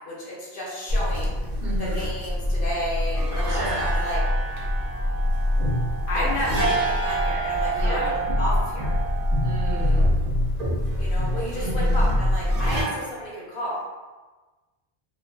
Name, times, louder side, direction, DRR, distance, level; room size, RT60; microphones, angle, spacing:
voice 1, 0.1-1.4 1.8-4.2 6.1-8.9 11.0-13.8, equal, 65° left, -5 dB, 0.8 m, -31 dB
sound 1, 0.9-12.8, equal, 50° right, 0.5 m, -24 dB
voice 2, 1.6-2.0 3.4-3.8 6.1-6.4 7.8-8.1 9.4-10.0 11.5-12.0, right 2 dB, 75° right, -5 dB, 0.9 m, -33 dB
2.5 x 2.1 x 2.3 m, 1.3 s
omnidirectional pair, 1.0 m